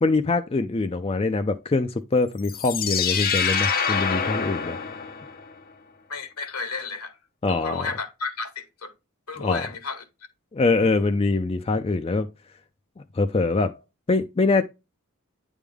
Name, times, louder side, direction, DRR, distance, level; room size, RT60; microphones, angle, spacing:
voice 1, 0.0-4.8 7.4-7.9 9.4-9.6 10.5-12.3 13.2-13.8 14.1-14.6, left 3 dB, 25° left, 0.4 m, -23 dB
sound 1, 2.4-5.5, left 6 dB, 40° left, 0.8 m, -26 dB
voice 2, 6.1-7.2 7.5-8.9 9.3-10.0, left 4 dB, 80° left, 1.4 m, -32 dB
9.2 x 3.6 x 3.4 m
head